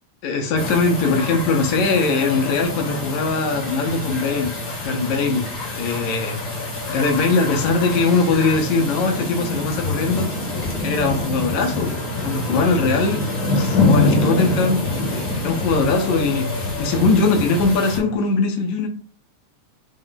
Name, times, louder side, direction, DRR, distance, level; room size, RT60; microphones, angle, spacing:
voice 1, 0.2-4.6 4.8-6.4 6.8-10.3 10.8-13.3 13.6-14.8 15.1-18.9, left 3 dB, 75° left, 2.0 m, -21 dB
sound 1, 0.5-18.2, left 2 dB, 60° left, 1.8 m, -31 dB
sound 2, 0.6-18.0, left 2 dB, 40° left, 1.3 m, -26 dB
5.2 x 2.5 x 3.8 m
omnidirectional pair, 3.4 m